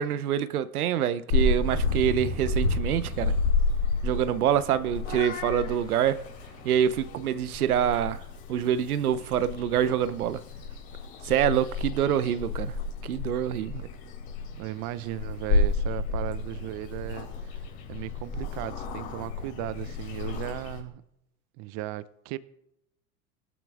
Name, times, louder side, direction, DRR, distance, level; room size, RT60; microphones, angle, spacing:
voice 1, 0.0-3.3 4.0-6.2 6.6-8.2 8.5-10.4 11.2-12.7 13.0-13.8, right 9 dB, 85° right, 0.7 m, -26 dB
Purr / Meow, 1.3-20.8, left 3 dB, 60° left, 3.8 m, -31 dB
voice 2, 14.5-17.6 17.9-21.0 21.6-22.4, right 15 dB, 40° right, 0.6 m, -36 dB
18.5 x 12.0 x 2.4 m
hypercardioid pair, 90°, 43 cm